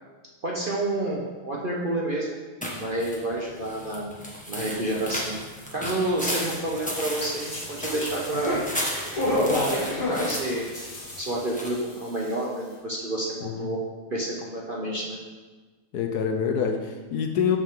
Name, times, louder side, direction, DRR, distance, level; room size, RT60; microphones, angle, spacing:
voice 1, 0.4-2.4 2.8-4.1 4.5-5.4 5.7-8.6 9.3-10.6 11.2-13.8 14.1-15.2, right 1 dB, 55° right, -4 dB, 0.5 m, -29 dB
sound 1, 2.6-11.7, equal, 5° left, 1.0 m, -35 dB
sound 2, 7.2-12.0 12.2-12.3, left 1 dB, 50° left, 2.5 m, -30 dB
voice 2, 15.9-17.6, left 7 dB, 70° left, 4 dB, 1.0 m, -26 dB
13.0 x 5.0 x 3.7 m, 1.3 s
omnidirectional pair, 2.3 m